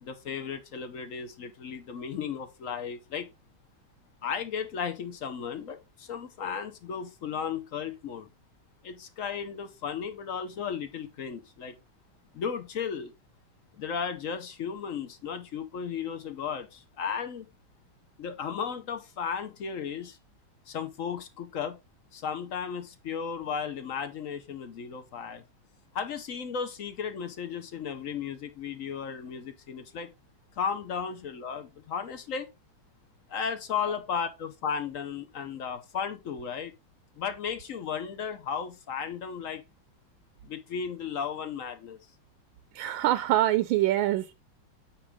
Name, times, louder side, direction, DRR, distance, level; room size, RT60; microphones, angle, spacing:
voice 1, 0.0-3.3 4.2-8.3 8.8-11.7 12.3-13.1 13.7-17.5 18.2-20.2 20.7-21.8 22.1-25.4 25.9-30.1 30.6-32.5 33.3-36.7 37.2-39.6 40.4-42.0, left 7 dB, 60° left, 0.9 m, -35 dB
voice 2, 42.7-44.3, right 14 dB, 80° right, 1.3 m, -25 dB
8.8 x 3.2 x 4.8 m
omnidirectional pair, 2.2 m